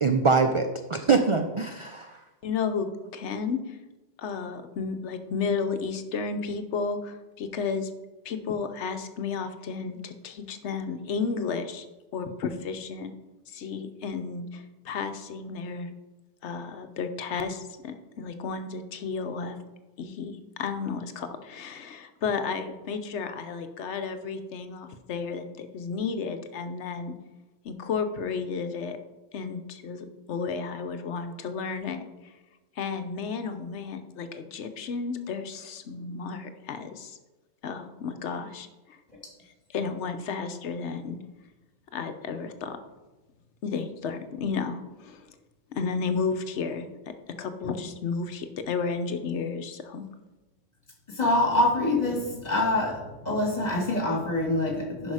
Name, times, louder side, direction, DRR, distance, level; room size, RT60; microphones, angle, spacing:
voice 1, 0.0-2.2, right 4 dB, 50° right, 6 dB, 0.3 m, -23 dB
voice 2, 2.4-2.9 3.1-3.8 4.2-7.9 8.2-11.9 12.1-13.1 13.5-15.9 16.4-19.6 20.0-27.1 27.6-29.0 29.3-32.3 32.8-37.2 37.6-39.0 39.7-41.2 41.9-42.8 43.6-45.4 45.7-46.9 47.4-50.1, left 5 dB, 70° left, 8 dB, 1.0 m, -32 dB
voice 3, 51.2-53.0 53.2-55.1, left 2 dB, 35° left, -1 dB, 2.1 m, -25 dB
10.5 x 5.4 x 4.8 m, 1.1 s
omnidirectional pair, 1.2 m